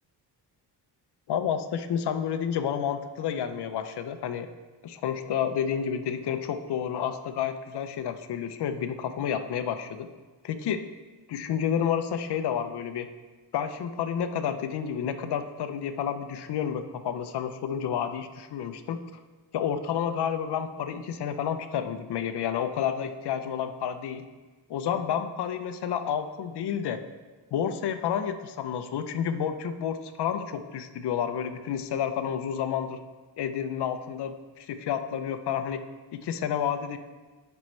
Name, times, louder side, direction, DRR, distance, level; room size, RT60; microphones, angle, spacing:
voice 1, 1.3-4.5 4.8-10.1 10.4-10.8 11.3-13.1 13.5-19.0 19.5-24.2 24.7-27.0 27.5-33.0 33.4-35.8 36.1-37.0, left 8 dB, 65° left, 9 dB, 0.6 m, -30 dB
10.5 x 5.4 x 3.2 m, 1.3 s
wide cardioid pair, 170°, 43 cm